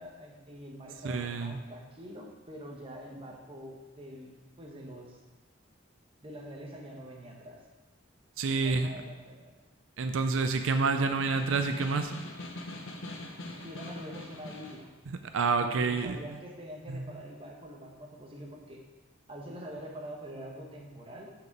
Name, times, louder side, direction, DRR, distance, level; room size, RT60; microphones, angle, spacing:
voice 1, 0.0-4.3 4.6-5.2 6.2-7.6 8.5-9.5 13.6-14.9 15.6-18.8 19.3-21.3, equal, 30° right, -1 dB, 1.1 m, -45 dB
voice 2, 1.0-1.6 8.4-8.9 10.0-12.1 15.1-16.2 16.9-17.0, right 4 dB, 85° right, 7 dB, 0.5 m, -28 dB
Snare drum, 11.0-14.9, left 2 dB, 80° left, 1.0 m, -43 dB
6.2 x 5.0 x 5.9 m, 1.2 s
head